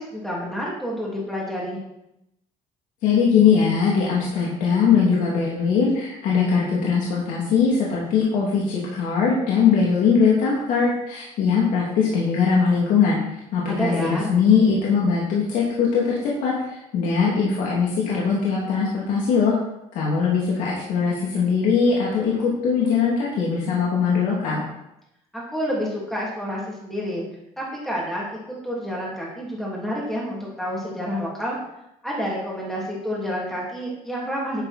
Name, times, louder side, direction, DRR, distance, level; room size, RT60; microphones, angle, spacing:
voice 1, 0.0-1.8 13.7-14.3 25.3-27.3 27.6-31.6 32.0-34.6, equal, ahead, -5 dB, 3.0 m, -29 dB
voice 2, 3.0-13.2 13.5-19.5 19.9-24.6, left 6 dB, 75° left, -5 dB, 3.0 m, -21 dB
10.5 x 10.5 x 4.4 m, 0.84 s
cardioid pair, 180°, 13 cm